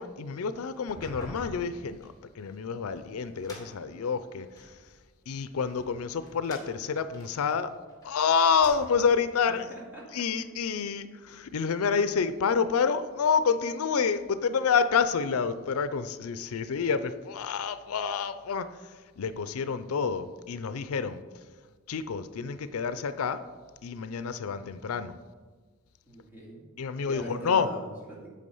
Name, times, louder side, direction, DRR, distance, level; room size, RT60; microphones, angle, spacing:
voice 1, 0.0-4.8 5.3-7.7 8.0-9.6 10.1-21.2 21.9-23.4 23.8-25.2 26.8-27.7, left 6 dB, 80° left, 12 dB, 0.5 m, -28 dB
sound 1, 0.7-4.8 5.4-8.1 8.4-9.2, left 1 dB, 15° left, 1.9 m, -47 dB
voice 2, 9.5-10.2 26.1-26.6 27.1-28.3, right 1 dB, 10° right, -5 dB, 2.3 m, -42 dB
8.4 x 7.0 x 5.4 m, 1.4 s
head